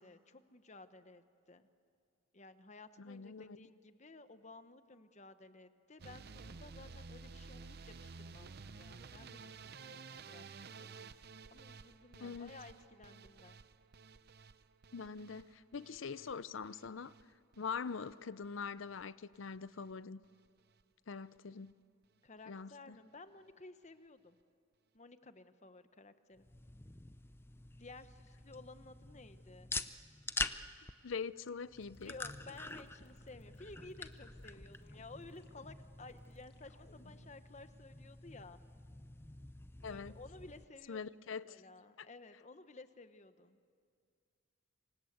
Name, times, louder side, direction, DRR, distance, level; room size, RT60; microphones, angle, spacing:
voice 1, 0.0-1.2 1.5-1.6 2.3-10.9 11.5-13.6 22.2-24.4 24.9-26.5 27.8-29.7 32.0-38.6 39.9-41.0 41.4-43.7, left 3 dB, 35° left, 10 dB, 1.1 m, -55 dB
voice 2, 3.0-3.6 12.2-12.5 14.9-17.1 17.6-20.2 21.1-21.7 22.5-23.0 31.0-32.1 39.8-40.1 40.9-41.6 42.0-42.1, left 5 dB, 70° left, 17 dB, 0.6 m, -43 dB
sound 1, 6.0-18.1 18.4-19.0 19.3-19.9 20.2-20.5 20.8-20.9 21.1-21.2, right 4 dB, 50° right, 0.6 m, -53 dB
sound 2, 26.4-40.6, left 3 dB, 10° left, 0.6 m, -46 dB
sound 3, 31.8-37.4, left 1 dB, 55° left, 2.1 m, -63 dB
27.5 x 25.0 x 8.0 m, 2.3 s
head